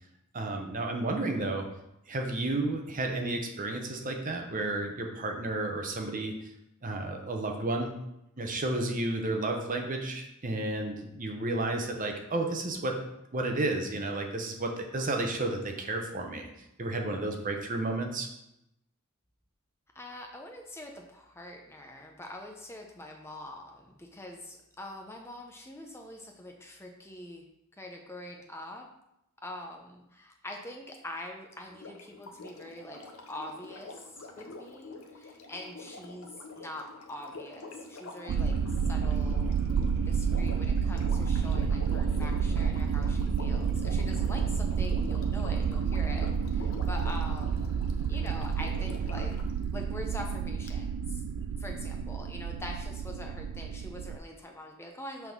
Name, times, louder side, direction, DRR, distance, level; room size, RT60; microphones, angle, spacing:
voice 1, 0.3-1.7 2.1-6.3 6.8-7.9 8.4-13.0 13.3-16.5 16.8-18.3, right 2 dB, 40° right, 3 dB, 0.9 m, -32 dB
voice 2, 19.9-27.5 27.8-28.9 29.4-33.0 33.3-38.6 38.9-39.5 40.0-47.7 48.1-49.3 49.7-51.2 51.6-55.3, left 1 dB, 10° left, 2 dB, 0.6 m, -44 dB
Sink (filling or washing), 31.7-49.5 50.7-50.8, left 3 dB, 70° left, 0.8 m, -46 dB
sound 1, 38.3-54.2, right 6 dB, 75° right, 0.3 m, -30 dB
5.9 x 3.6 x 6.0 m, 0.85 s
head